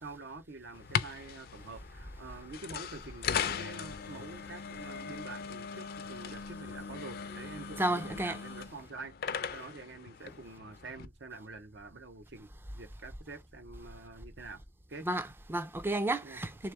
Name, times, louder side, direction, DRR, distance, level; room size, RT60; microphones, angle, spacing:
voice 1, 0.0-12.5 12.7-14.6 14.9-15.1 16.2-16.4, right 3 dB, 80° right, 0.8 m, -47 dB
sound 1, 0.7-11.1, left 7 dB, 55° left, 0.4 m, -39 dB
voice 2, 7.8-8.4 15.0-16.7, right 1 dB, 10° right, 0.4 m, -32 dB
3.4 x 3.1 x 3.3 m
head